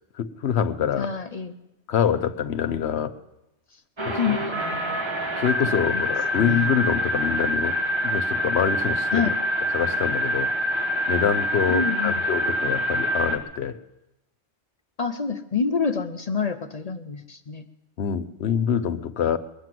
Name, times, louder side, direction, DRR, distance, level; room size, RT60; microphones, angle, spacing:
voice 1, 0.2-1.1 1.9-3.1 4.0-4.4 5.4-7.8 8.0-9.3 9.7-13.8 18.0-19.4, left 8 dB, 65° left, 11 dB, 1.0 m, -25 dB
voice 2, 1.0-1.5 4.2-5.0 5.6-6.0 6.3-6.7 9.1-9.4 11.7-12.2 15.0-17.7, left 6 dB, 40° left, 9 dB, 0.6 m, -28 dB
sound 1, 4.0-13.4, equal, 25° right, 1.3 m, -25 dB
21.5 x 7.8 x 7.6 m, 0.91 s
omnidirectional pair, 1.2 m